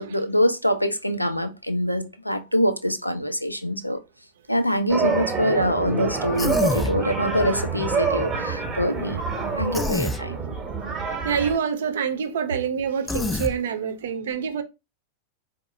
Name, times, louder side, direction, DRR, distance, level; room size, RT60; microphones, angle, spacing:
voice 1, 0.0-4.0 4.5-9.3 9.6-10.4, equal, 90° left, 0.5 m, -24 dB
sound 1, 4.9-11.6, right 5 dB, 20° right, 0.9 m, -27 dB
Human voice, 6.4-7.0 9.7-10.2 13.1-13.5, left 3 dB, 10° left, 0.4 m, -26 dB
voice 2, 11.2-14.6, right 7 dB, 60° right, 0.6 m, -26 dB
4.4 x 2.1 x 3.1 m
figure-of-eight pair, 90°, 0 cm